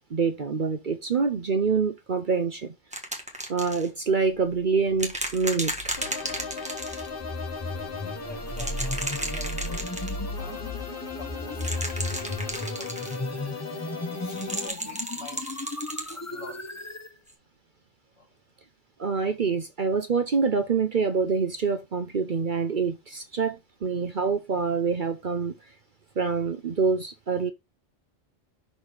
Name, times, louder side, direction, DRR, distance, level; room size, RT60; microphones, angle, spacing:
voice 1, 0.1-2.7 3.5-6.0 19.0-25.5 26.2-27.5, right 5 dB, 45° right, 0.8 m, -26 dB
sound 1, 2.9-3.9 5.0-7.1 8.5-10.1 11.5-13.2 14.3-16.2 17.3-17.4, right 1 dB, 5° right, 1.5 m, -33 dB
sound 2, 5.0-17.1, left 2 dB, 15° left, 0.8 m, -35 dB
sound 3, 6.0-14.7, left 4 dB, 45° left, 1.3 m, -38 dB
voice 2, 7.7-10.7 11.2-11.7 12.4-13.3 14.1-15.5 16.1-16.8 18.2-18.3, left 3 dB, 70° left, 2.6 m, -47 dB
6.3 x 4.3 x 4.9 m
omnidirectional pair, 1.3 m